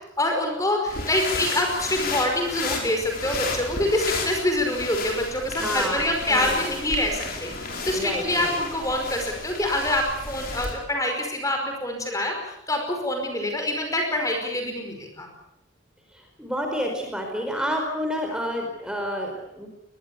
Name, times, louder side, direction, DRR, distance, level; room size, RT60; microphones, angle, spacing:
voice 1, 0.2-15.3, left 1 dB, 15° left, 3 dB, 5.1 m, -26 dB
sound 1, 0.9-10.8, left 3 dB, 50° left, 5.6 m, -32 dB
voice 2, 5.6-6.8 7.8-8.6 16.1-19.7, equal, 5° right, 3 dB, 4.8 m, -30 dB
23.0 x 21.5 x 8.4 m, 0.76 s
head